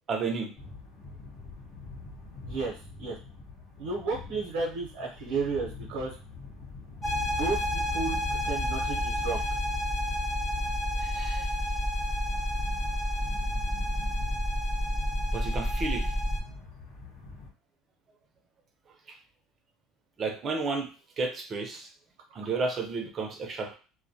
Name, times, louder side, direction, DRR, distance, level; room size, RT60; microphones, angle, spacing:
voice 1, 0.1-0.5 11.0-11.5 15.3-16.1 20.2-20.9 21.2-21.9 22.3-23.8, right 4 dB, 30° right, 4 dB, 0.5 m, -32 dB
sound 1, 0.5-17.5, left 3 dB, 55° left, 0.8 m, -46 dB
voice 2, 2.4-3.2 3.8-6.1 7.0-8.2 8.4-9.4, right 4 dB, 75° right, -2 dB, 0.7 m, -33 dB
sound 2, 7.0-16.4, equal, 20° left, 0.6 m, -29 dB
2.2 x 2.1 x 2.7 m, 0.35 s
cardioid pair, 135°, 0 cm